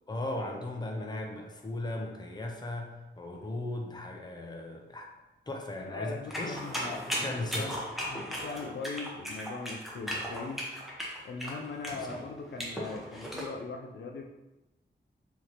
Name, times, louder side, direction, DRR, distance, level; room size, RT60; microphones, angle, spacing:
voice 1, 0.1-5.1 5.5-6.6 7.1-7.9 12.1-12.2, left 2 dB, 20° left, 1 dB, 0.6 m, -37 dB
voice 2, 5.7-7.8 8.1-10.7 11.2-14.2, left 4 dB, 70° left, 2 dB, 0.4 m, -40 dB
sound 1, 6.3-13.5, equal, ahead, 0.9 m, -36 dB
4.9 x 2.9 x 2.9 m, 1.0 s
wide cardioid pair, 140°, 19 cm